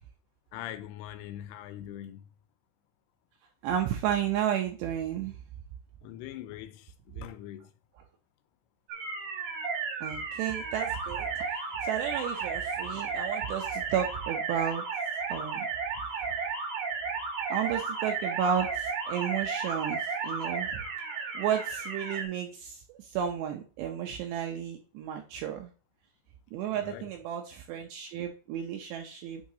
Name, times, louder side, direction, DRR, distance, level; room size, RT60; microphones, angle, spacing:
voice 1, 0.5-2.3 6.0-7.7 26.7-27.1, left 12 dB, 90° left, 3.1 m, -42 dB
voice 2, 3.6-5.4 10.0-11.3 11.8-14.9 15.3-15.7 16.2-16.4 17.5-20.8 21.3-25.7 26.5-29.4, right 9 dB, 80° right, 2.5 m, -32 dB
sound 1, 8.9-22.2, right 5 dB, 65° right, 2.0 m, -33 dB
9.2 x 4.7 x 2.7 m
omnidirectional pair, 5.6 m